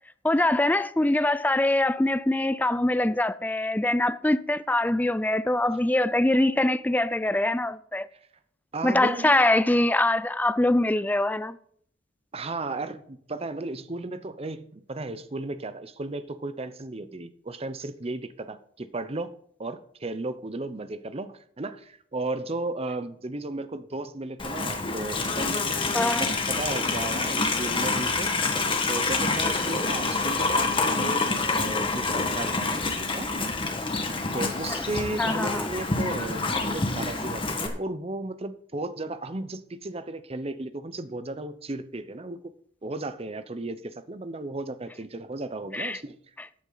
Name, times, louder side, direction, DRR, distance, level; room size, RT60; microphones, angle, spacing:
voice 1, 0.2-8.1 8.8-11.6 25.9-26.3 34.7-34.8 35.2-35.7 45.7-46.0, left 1 dB, 10° left, 0.4 m, -23 dB
voice 2, 8.7-9.5 12.3-19.3 19.6-28.3 28.9-33.3 34.3-42.5 42.8-46.2, right 2 dB, 30° right, 0.7 m, -35 dB
Livestock farm animals working animals, 24.4-37.7, left 3 dB, 30° left, 1.6 m, -27 dB
14.0 x 8.8 x 4.0 m
head